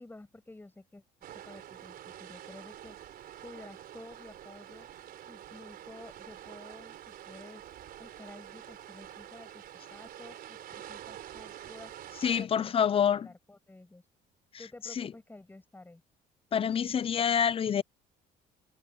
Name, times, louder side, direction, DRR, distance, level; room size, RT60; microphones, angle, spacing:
voice 1, 0.0-4.9 5.3-7.7 8.0-9.6 9.9-14.1 14.6-16.0, left 2 dB, 10° left, 7.0 m, -51 dB
sound 1, 1.2-12.4, right 11 dB, 65° right, 4.2 m, -47 dB
voice 2, 12.2-13.3 15.0-15.1 16.5-17.8, left 8 dB, 35° left, 0.5 m, -27 dB
cardioid pair, 110°, 17 cm